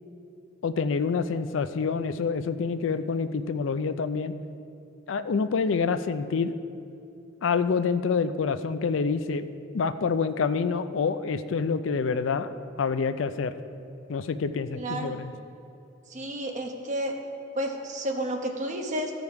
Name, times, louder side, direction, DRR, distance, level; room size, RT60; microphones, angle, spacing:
voice 1, 0.6-4.3 5.1-6.6 7.4-9.5 9.7-12.5 12.8-13.5 14.1-15.3, left 5 dB, 70° left, 12 dB, 0.4 m, -27 dB
voice 2, 14.8-15.2 16.1-17.1 17.5-19.1, right 1 dB, 40° right, 2 dB, 1.0 m, -31 dB
15.0 x 5.3 x 4.7 m, 2.8 s
head